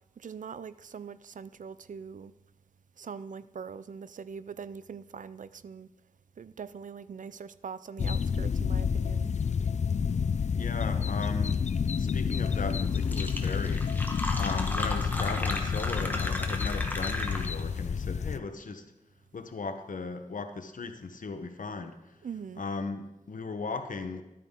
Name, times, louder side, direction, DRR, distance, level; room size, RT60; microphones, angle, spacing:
voice 1, 0.2-2.3 3.0-5.9 6.4-9.3 22.2-22.6, right 6 dB, 70° right, 0.4 m, -42 dB
sound 1, 8.0-18.4, left 6 dB, 60° left, 0.4 m, -29 dB
voice 2, 10.5-11.6 12.0-13.9 14.4-18.8 19.3-22.2 22.6-24.2, left 4 dB, 75° left, 0.9 m, -37 dB
Fill (with liquid), 12.6-12.7 13.0-17.7, left 1 dB, 15° left, 1.2 m, -35 dB
12.0 x 9.1 x 3.7 m
wide cardioid pair, 80°, 14 cm